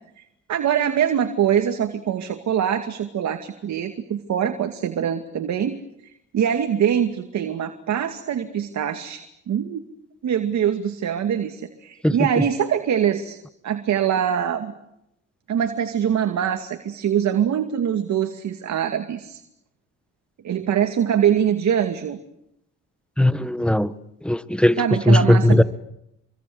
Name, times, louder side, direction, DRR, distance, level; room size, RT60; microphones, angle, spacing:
voice 1, 0.5-9.8 10.2-13.4 13.6-14.7 15.5-19.4 20.4-22.2 24.8-25.6, right 9 dB, 65° right, 7 dB, 2.4 m, -23 dB
voice 2, 23.2-23.9 24.2-25.6, left 1 dB, 5° left, 13 dB, 1.4 m, -18 dB
26.5 x 24.0 x 8.0 m, 0.82 s
cardioid pair, 90°, 30 cm